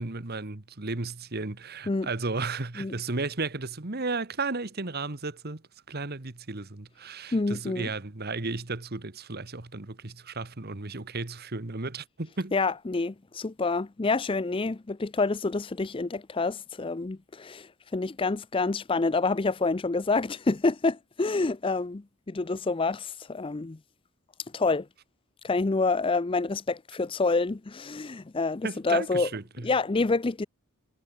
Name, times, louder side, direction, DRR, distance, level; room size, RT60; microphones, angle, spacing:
voice 1, 0.0-5.6 5.9-12.5 28.6-29.7, right 3 dB, 45° right, 1.4 m, -34 dB
voice 2, 7.3-7.9 12.5-23.8 24.5-24.9 25.4-29.3 29.6-30.5, left 3 dB, 25° left, 0.5 m, -27 dB
head